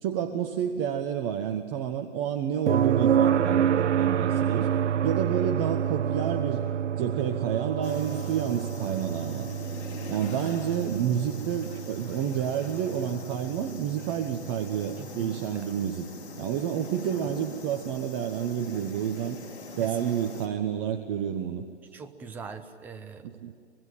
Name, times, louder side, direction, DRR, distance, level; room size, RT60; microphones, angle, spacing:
voice 1, 0.0-4.7 5.0-6.6 7.0-9.5 10.1-16.1 16.4-19.4 19.7-21.6 23.2-23.5, right 9 dB, 25° right, 5 dB, 1.1 m, -29 dB
sound 1, 2.7-16.5 18.8-18.9, right 9 dB, 85° right, 0.6 m, -28 dB
sound 2, 7.8-20.5, left 5 dB, 70° left, 4.0 m, -43 dB
voice 2, 15.0-15.7 19.8-20.1 21.9-23.3, right 5 dB, 5° right, 7 dB, 0.6 m, -42 dB
24.5 x 22.0 x 9.2 m, 2.2 s
hypercardioid pair, 145°, 34 cm